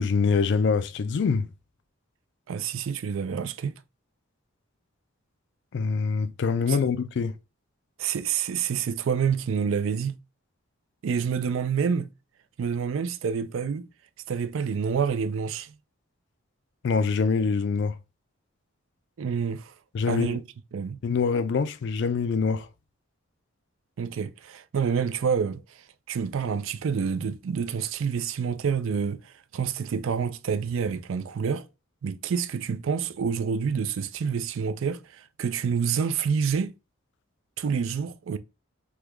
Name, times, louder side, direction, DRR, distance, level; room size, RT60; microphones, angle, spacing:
voice 1, 0.0-1.5 5.7-7.3 16.8-18.0 19.9-20.4 21.0-22.7, left 5 dB, 55° left, 0.3 m, -24 dB
voice 2, 2.5-3.8 6.7-6.8 8.0-10.2 11.0-12.1 12.6-13.9 14.3-15.7 19.2-19.7 20.1-20.4 20.7-21.0 24.0-25.6 26.1-31.7 32.0-36.7 37.6-38.4, right 6 dB, 70° right, 0.4 m, -28 dB
3.6 x 2.2 x 3.0 m
head